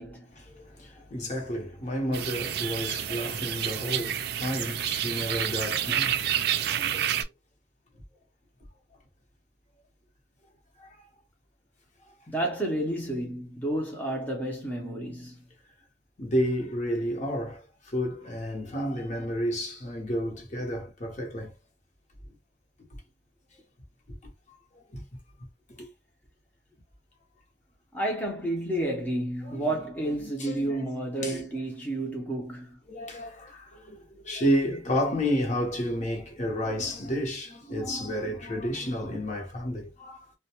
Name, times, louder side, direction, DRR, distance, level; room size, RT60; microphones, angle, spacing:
voice 1, 0.4-6.2 6.6-7.2 10.8-11.0 16.2-21.5 24.1-24.2 24.8-25.0 25.8-25.9 29.4-29.7 30.2-30.9 31.2-31.4 32.9-40.3, equal, 45° left, 0.8 m, -31 dB
sound 1, 2.1-7.2, right 10 dB, 65° right, 0.3 m, -29 dB
voice 2, 12.3-15.4 27.9-32.8, right 1 dB, 10° left, 0.5 m, -31 dB
2.1 x 2.1 x 2.8 m
head